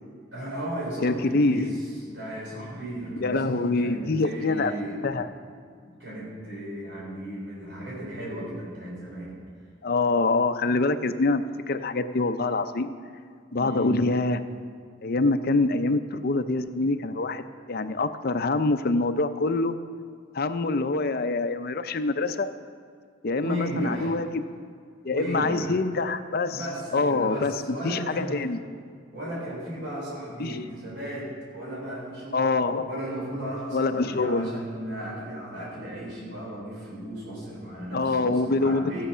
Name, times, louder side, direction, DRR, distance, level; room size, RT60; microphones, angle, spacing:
voice 1, 0.3-5.0 5.8-9.4 13.5-14.0 23.4-24.2 25.1-25.8 26.5-28.5 29.1-32.5 32.8-39.0, right 1 dB, 70° right, -5 dB, 3.9 m, -35 dB
voice 2, 1.0-1.7 3.2-4.7 5.0-5.3 9.8-12.9 13.5-14.4 15.0-19.8 20.3-22.5 23.2-24.4 25.0-26.6 26.9-28.6 30.4-30.6 32.3-33.0 33.7-34.5 37.9-39.0, left 3 dB, 55° left, 9 dB, 0.6 m, -25 dB
14.5 x 8.7 x 5.6 m, 2.1 s
head